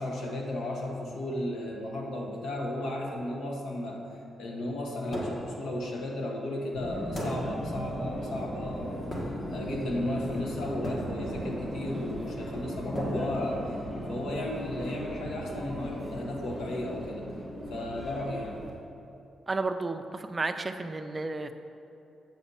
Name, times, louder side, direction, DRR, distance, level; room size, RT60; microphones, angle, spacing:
voice 1, 0.0-4.1 4.4-9.1 9.5-13.8 14.1-17.2 17.7-18.6, left 1 dB, 85° left, 0 dB, 1.3 m, -34 dB
sound 1, 5.1-5.7 7.1-7.7 9.1-9.6 10.8-11.4 12.9-13.9, equal, 35° left, 1.3 m, -36 dB
Subway metro underground, 6.7-18.7, equal, 10° left, 2.0 m, -37 dB
voice 2, 19.5-21.5, right 3 dB, 25° right, 8 dB, 0.4 m, -32 dB
7.6 x 4.1 x 6.9 m, 2.8 s
cardioid pair, 135°, 0 cm